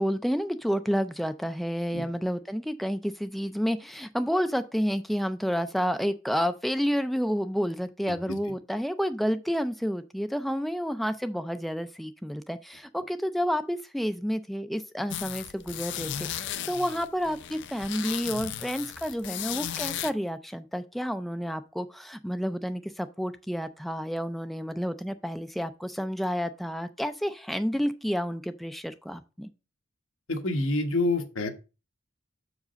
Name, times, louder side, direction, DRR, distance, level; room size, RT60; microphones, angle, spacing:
voice 1, 0.0-16.1 16.4-29.5, equal, ahead, 0.4 m, -30 dB
sound 1, 15.1-20.1, left 10 dB, 65° left, 0.5 m, -35 dB
voice 2, 30.3-31.5, left 2 dB, 80° left, 1.2 m, -28 dB
6.5 x 4.9 x 5.1 m
head